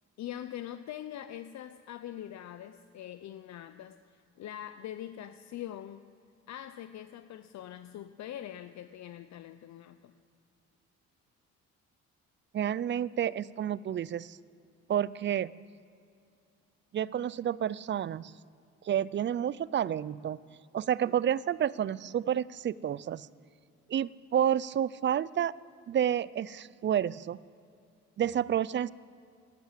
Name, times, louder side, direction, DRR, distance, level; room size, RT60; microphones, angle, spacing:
voice 1, 0.2-6.0 6.5-10.1, left 11 dB, 65° left, 10 dB, 0.6 m, -43 dB
voice 2, 12.5-14.4 14.9-15.5 16.9-18.3 18.8-20.4 20.7-23.3 23.9-25.5 25.9-27.4 28.2-28.9, right 10 dB, 40° right, 20 dB, 0.4 m, -30 dB
12.0 x 12.0 x 8.0 m, 2.4 s
cardioid pair, 90°, 30 cm